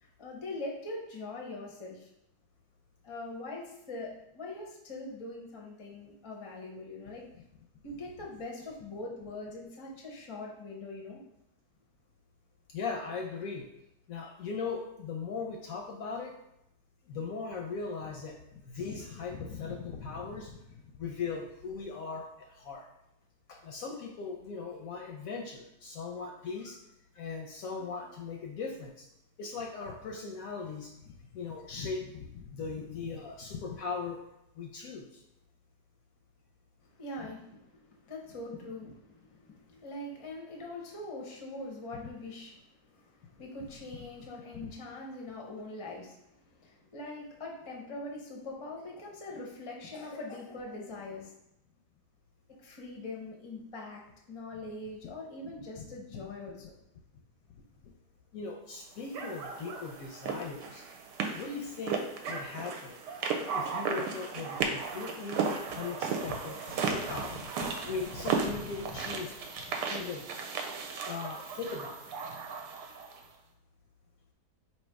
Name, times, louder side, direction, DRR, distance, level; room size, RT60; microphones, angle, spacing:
voice 1, 0.0-2.1 3.0-7.2 7.8-11.2 36.8-51.4 52.5-54.0 54.3-56.7, left 2 dB, 40° left, -2 dB, 0.4 m, -42 dB
voice 2, 12.7-13.6 14.1-16.3 17.1-22.9 23.6-26.8 27.1-29.0 29.4-34.2 34.6-35.2 44.6-44.7 55.8-55.9 58.3-60.8 61.3-62.0 62.2-63.0 63.5-65.4 65.7-70.3 71.1-72.0, left 5 dB, 70° left, 1 dB, 0.8 m, -39 dB
sound 1, 59.1-73.2, right 5 dB, 90° right, 1.2 m, -35 dB
3.2 x 2.8 x 4.5 m, 0.84 s
omnidirectional pair, 1.8 m